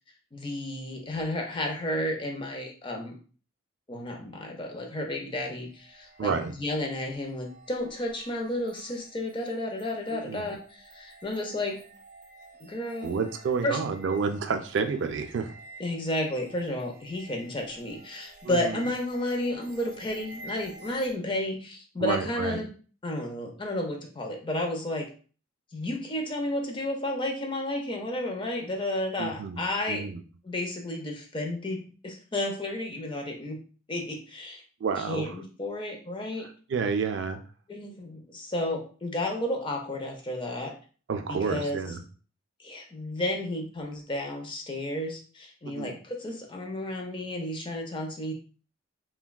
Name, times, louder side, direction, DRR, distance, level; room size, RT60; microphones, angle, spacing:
voice 1, 0.3-3.2 3.9-11.9 12.6-13.1 13.6-13.8 15.8-22.7 23.0-25.1 25.7-30.1 30.4-33.6 33.9-34.6 35.0-36.5 37.7-40.8 41.3-41.8 42.6-48.3, left 1 dB, 25° left, 2 dB, 0.5 m, -32 dB
sound 1, 5.3-21.1, right 2 dB, 40° right, 0.8 m, -51 dB
voice 2, 6.2-6.5 10.1-10.5 13.0-15.5 18.4-18.8 22.0-22.6 29.2-29.6 29.9-30.2 34.8-35.3 36.7-37.4 41.1-42.0 45.6-46.0, right 5 dB, 65° right, 7 dB, 0.4 m, -30 dB
3.3 x 2.2 x 2.2 m, 0.39 s
head